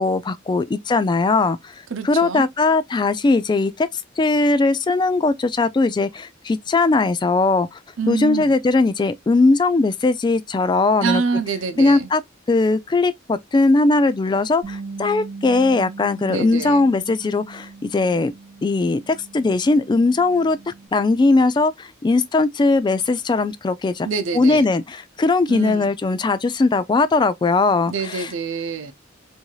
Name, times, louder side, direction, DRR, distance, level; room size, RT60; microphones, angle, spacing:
voice 1, 0.0-1.7 2.0-3.9 4.2-7.8 8.1-11.2 11.8-12.2 12.5-18.3 18.6-24.1 24.3-28.3, left 3 dB, 25° left, 0.3 m, -19 dB
voice 2, 1.9-2.5 8.0-8.5 11.0-12.1 16.3-16.8 24.0-24.7 25.5-25.9 27.9-28.9, right 5 dB, 85° right, 0.7 m, -26 dB
Bass guitar, 14.6-20.9, right 4 dB, 60° right, 1.5 m, -39 dB
4.7 x 2.6 x 2.3 m
head